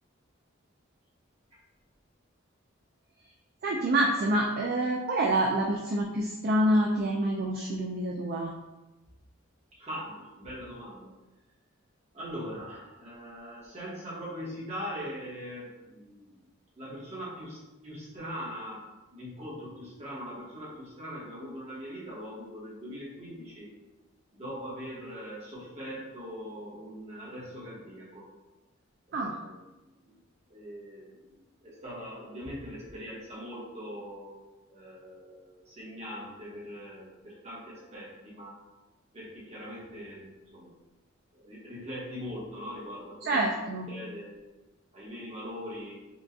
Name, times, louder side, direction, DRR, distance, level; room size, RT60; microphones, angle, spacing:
voice 1, 3.6-8.5 29.1-29.3 43.2-43.9, right 1 dB, 50° right, -1 dB, 0.3 m, -27 dB
voice 2, 9.8-11.1 12.1-16.4 16.7-18.8 19.1-23.7 24.3-28.3 29.1-29.6 30.5-34.3 34.7-38.6 39.1-40.7 41.3-43.4 43.9-44.4 44.9-46.0, equal, 35° right, -7 dB, 1.1 m, -41 dB
4.5 x 2.3 x 2.6 m, 1.1 s
head